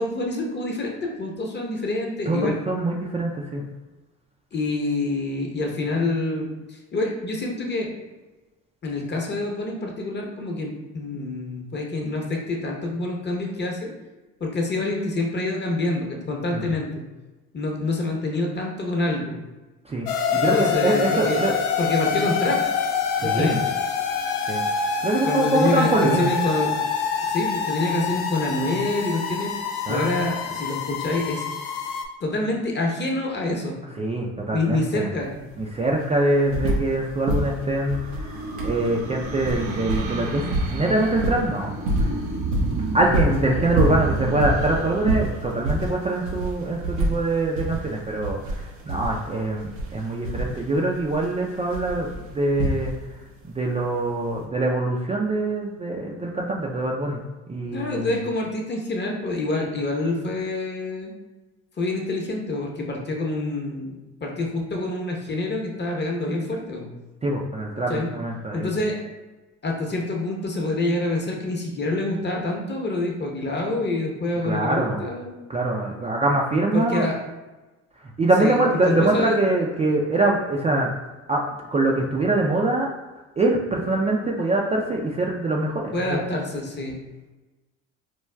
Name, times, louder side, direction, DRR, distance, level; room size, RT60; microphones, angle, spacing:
voice 1, 0.0-2.6 4.5-7.9 8.8-13.9 14.4-17.0 17.5-19.4 20.3-21.4 21.8-22.6 23.2-23.6 25.3-26.7 27.2-29.5 29.9-31.4 32.2-33.8 34.5-35.3 57.7-61.1 61.8-66.9 67.9-68.1 68.5-69.0 69.6-75.3 76.7-77.2 78.4-78.6 78.9-79.4 85.9-87.0, left 2 dB, 30° left, 0 dB, 0.8 m, -26 dB
voice 2, 2.3-3.6 16.5-16.7 19.9-21.5 23.2-23.6 24.5-24.6 25.0-26.3 29.9-30.1 34.0-35.1 35.6-42.2 42.9-53.2 53.4-57.2 57.5-58.1 67.2-68.8 74.4-75.0 75.5-77.1 78.0-80.9 81.3-81.4 81.7-82.9 83.4-86.2, right 2 dB, 20° right, -2 dB, 0.4 m, -24 dB
sound 1, 20.1-32.0, left 6 dB, 65° left, 0.5 m, -26 dB
sound 2, 35.2-35.3 35.5-37.0 37.2-53.2 54.3-54.4, right 1 dB, 90° right, 0.8 m, -28 dB
sound 3, 37.1-46.5, right 4 dB, 55° right, 0.9 m, -32 dB
4.5 x 2.3 x 2.2 m, 1.2 s
supercardioid pair, 75°, 36 cm